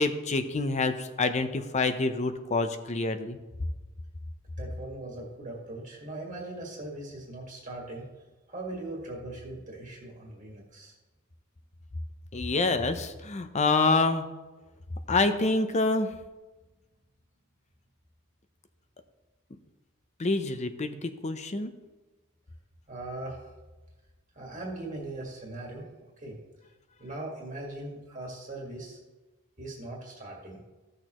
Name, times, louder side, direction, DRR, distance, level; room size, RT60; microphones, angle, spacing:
voice 1, 0.0-3.4 12.3-14.2 15.1-16.1 20.2-21.7, left 3 dB, 30° left, 9 dB, 0.6 m, -27 dB
voice 2, 4.6-8.1 8.5-10.9 22.9-23.4 24.3-25.8 26.2-26.4 27.0-29.0 29.6-30.6, right 2 dB, 35° right, -2 dB, 1.7 m, -40 dB
15.0 x 6.5 x 3.0 m, 1.2 s
head